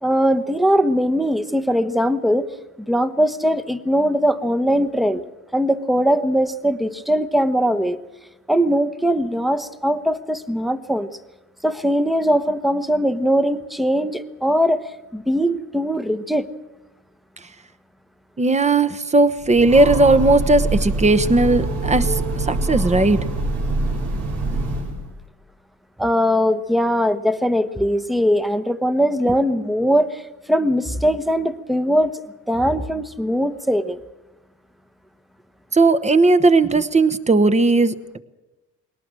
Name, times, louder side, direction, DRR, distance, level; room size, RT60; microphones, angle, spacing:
voice 1, 0.0-2.5 2.8-5.2 5.5-8.0 8.5-11.1 11.6-14.8 15.1-16.5 26.0-30.2 30.5-32.1 32.5-34.0, equal, ahead, 10 dB, 1.0 m, -20 dB
voice 2, 18.4-23.2 35.7-38.2, right 2 dB, 20° right, 13 dB, 1.1 m, -17 dB
Train, 19.4-25.1, right 2 dB, 80° right, 4.2 m, -24 dB
21.5 x 19.0 x 7.6 m, 1.0 s
cardioid pair, 90°, 30 cm